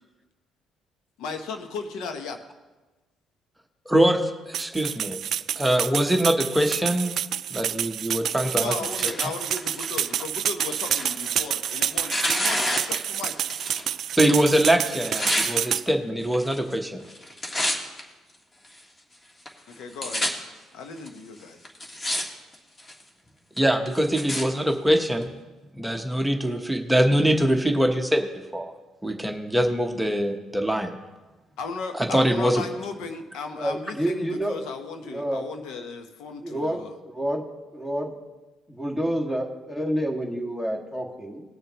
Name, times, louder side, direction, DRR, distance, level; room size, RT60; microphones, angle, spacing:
voice 1, 1.2-2.4 8.6-13.3 19.7-20.3 20.7-21.6 31.6-37.0, left 4 dB, 80° left, 6 dB, 0.9 m, -36 dB
voice 2, 3.9-5.2 5.6-7.1 7.5-8.7 14.2-17.0 23.6-25.3 25.7-28.3 28.5-28.7 29.0-31.0 31.9-32.6, right 1 dB, 5° right, 3 dB, 1.0 m, -23 dB
sound 1, 4.5-15.8, right 10 dB, 65° right, 0.3 m, -28 dB
Tearing, 8.4-13.9 14.1-15.5 16.2-16.8 17.0-18.0 18.6-18.7 19.5-19.6 19.7-20.3 21.1-21.2 21.6-22.2 22.5-23.0 23.6-24.4 25.2-25.3, left 1 dB, 30° left, 1.7 m, -30 dB
voice 3, 33.5-34.6 35.0-35.5 36.4-37.4 37.7-38.1 38.7-41.4, equal, 15° left, 0 dB, 1.8 m, -28 dB
19.5 x 6.8 x 3.0 m, 1.2 s
cardioid pair, 85°, 0 cm